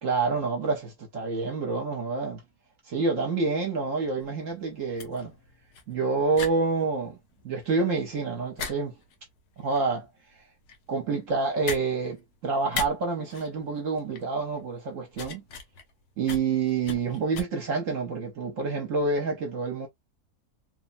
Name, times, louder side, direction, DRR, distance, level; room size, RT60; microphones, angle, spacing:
voice 1, 0.0-2.4 2.8-5.3 5.9-7.2 7.4-8.9 9.6-10.1 10.9-15.4 16.2-19.9, right 4 dB, 60° right, 1.1 m, -28 dB
sound 1, 4.2-17.4, left 5 dB, 85° left, 1.2 m, -40 dB
3.1 x 2.1 x 2.5 m
omnidirectional pair, 1.6 m